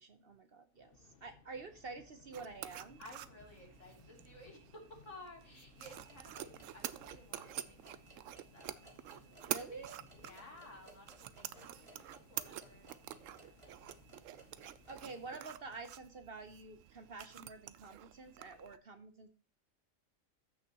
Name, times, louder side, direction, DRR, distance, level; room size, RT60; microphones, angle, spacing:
voice 1, 0.0-3.0 9.5-10.1 14.9-19.3, right 3 dB, 50° right, 8 dB, 1.0 m, -49 dB
Subway metro underground, 0.7-15.6, left 4 dB, 45° left, 1.1 m, -64 dB
sound 1, 2.3-18.8, right 11 dB, 75° right, 0.9 m, -48 dB
voice 2, 3.0-9.9 10.2-13.8, left 2 dB, 65° left, 0 dB, 3.4 m, -56 dB
sound 2, 5.8-15.4, right 2 dB, 25° right, 1.6 m, -62 dB
14.0 x 6.4 x 3.0 m, 0.34 s
omnidirectional pair, 1.4 m